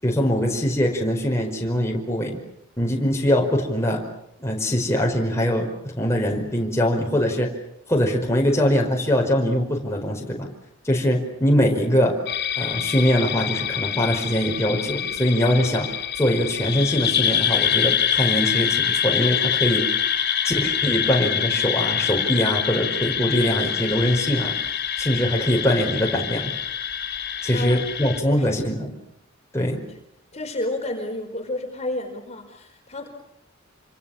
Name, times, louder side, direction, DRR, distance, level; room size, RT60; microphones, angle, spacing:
voice 1, 0.0-2.4 2.8-4.0 4.4-7.5 7.9-10.5 10.8-12.2 12.6-15.9 16.1-19.8 20.4-24.6 25.0-26.5 27.4-28.9 29.5-29.8, equal, 15° left, 0 dB, 5.0 m, -22 dB
sound 1, 12.3-28.2, left 9 dB, 55° left, 4.2 m, -25 dB
voice 2, 27.5-27.8 28.3-28.5 30.3-33.1, left 1 dB, 35° left, 3 dB, 4.6 m, -30 dB
28.5 x 26.5 x 7.3 m, 0.76 s
head